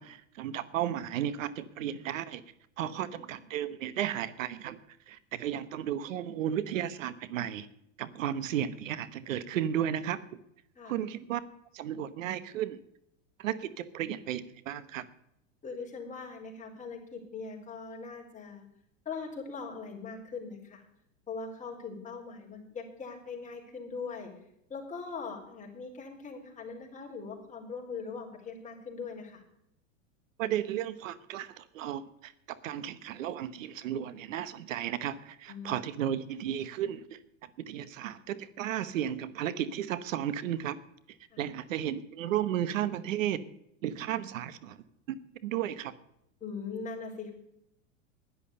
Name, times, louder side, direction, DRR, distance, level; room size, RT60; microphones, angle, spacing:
voice 1, 0.0-2.4 2.8-4.8 5.1-7.7 8.0-10.2 10.8-11.4 11.7-12.8 13.4-15.0 30.4-37.2 37.7-40.8 41.4-43.4 43.8-45.2 45.4-45.9, right 10 dB, 80° right, 15 dB, 1.0 m, -34 dB
voice 2, 2.8-3.4 10.8-11.0 15.6-18.6 19.0-20.8 21.3-24.3 24.7-29.4 35.5-35.9 41.3-41.4 46.4-47.3, left 4 dB, 20° left, -1 dB, 4.4 m, -41 dB
11.0 x 11.0 x 6.6 m, 0.78 s
hypercardioid pair, 110°, 39 cm